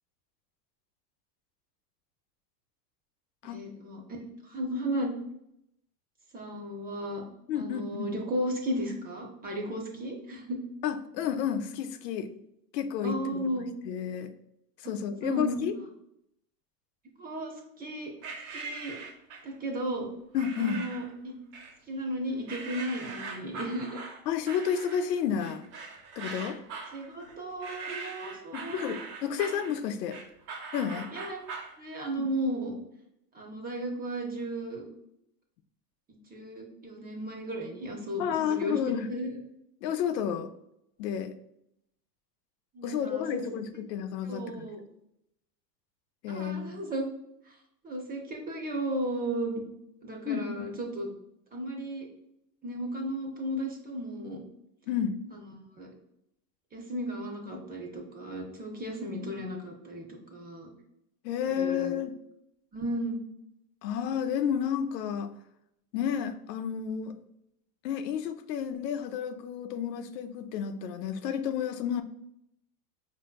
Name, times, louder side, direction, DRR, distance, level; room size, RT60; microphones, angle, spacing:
voice 1, 3.4-4.0 4.4-5.1 6.3-7.2 7.5-10.6 13.0-13.7 14.8-14.9 15.2-15.6 17.0-18.1 18.5-19.0 19.4-20.1 20.6-21.4 21.9-24.1 26.9-29.4 30.9-31.4 31.8-32.7 33.3-34.9 36.1-39.3 42.7-43.4 44.2-44.8 46.3-47.1 47.4-47.6 47.8-49.6 50.0-51.1 51.5-52.1 52.6-54.4 55.3-55.9 56.7-60.7 61.4-61.9 62.7-63.2, right 1 dB, 20° right, 1 dB, 0.6 m, -35 dB
voice 2, 7.5-8.1 10.8-12.3 12.7-13.4 13.8-14.3 14.8-15.8 20.3-20.8 24.3-25.7 26.2-26.6 28.5-30.2 30.7-31.1 32.2-32.3 38.2-39.1 39.8-40.5 41.0-41.3 42.8-44.7 46.2-46.8 50.3-50.6 54.9-55.2 61.2-62.1 63.8-65.3 65.9-67.1 67.8-72.0, left 8 dB, 85° left, 9 dB, 0.5 m, -31 dB
sound 1, 18.2-19.5 20.3-21.1 21.5-22.1 22.5-31.8, right 4 dB, 75° right, 1.0 m, -41 dB
4.1 x 2.7 x 2.3 m, 0.78 s
supercardioid pair, 115°, 48 cm